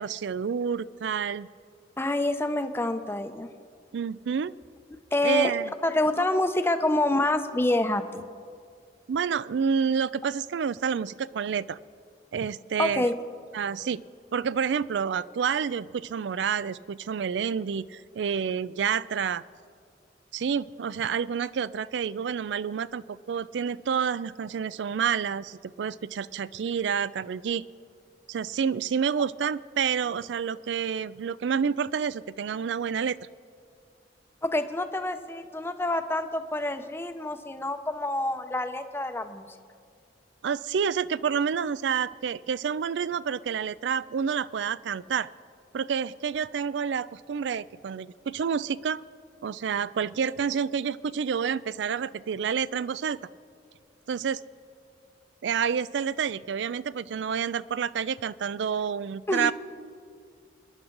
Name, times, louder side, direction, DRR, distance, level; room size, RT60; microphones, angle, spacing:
voice 1, 0.0-1.5 3.9-4.5 5.2-5.7 6.2-6.3 9.1-11.8 12.3-13.1 13.5-14.0 14.3-19.4 20.3-27.7 28.3-33.2 40.4-45.3 45.7-49.0 49.4-53.2 54.1-54.4 55.4-59.5, right 7 dB, 80° right, 18 dB, 0.4 m, -29 dB
voice 2, 2.0-3.5 5.1-5.5 5.8-8.2 12.8-13.1 34.4-39.5 59.3-59.5, left 1 dB, 15° left, 8 dB, 0.7 m, -27 dB
27.5 x 11.0 x 3.9 m, 2.2 s
head